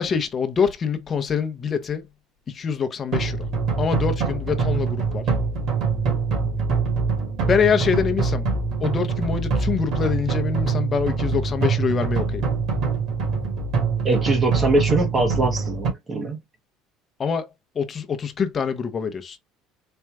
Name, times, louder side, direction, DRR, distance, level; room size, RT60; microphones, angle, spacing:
voice 1, 0.0-2.1 2.5-3.5 3.8-5.3 7.5-8.5 8.8-12.4 17.2-17.5 17.7-19.4, left 6 dB, 30° left, 0.9 m, -25 dB
sound 1, 3.1-15.9, right 5 dB, 60° right, 2.3 m, -24 dB
voice 2, 14.0-16.4, right 2 dB, 25° right, 1.0 m, -22 dB
4.4 x 2.4 x 3.5 m
cardioid pair, 130°, 0 cm